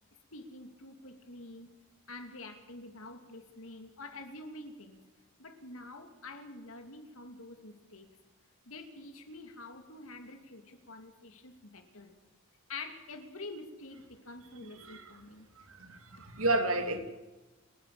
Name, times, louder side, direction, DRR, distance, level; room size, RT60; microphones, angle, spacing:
voice 1, 0.3-1.7 2.1-5.0 5.4-8.1 8.6-12.1 12.7-15.5, left 2 dB, 75° left, 6 dB, 2.9 m, -47 dB
voice 2, 15.8-17.0, right 2 dB, 80° right, 7 dB, 2.7 m, -31 dB
29.5 x 10.5 x 8.6 m, 1.1 s
head